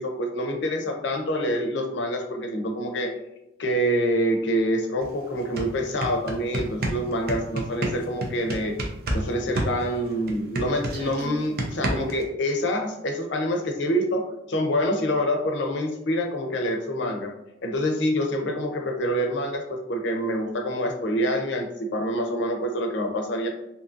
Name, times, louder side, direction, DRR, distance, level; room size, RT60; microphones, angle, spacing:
voice 1, 0.0-3.1 3.6-8.8 9.1-17.3 17.6-23.5, equal, 65° left, 3 dB, 0.5 m, -26 dB
sound 1, 5.0-5.1 5.4-9.2 9.5-12.2, right 1 dB, 50° right, 0.5 m, -28 dB
2.7 x 2.5 x 2.4 m, 0.87 s
head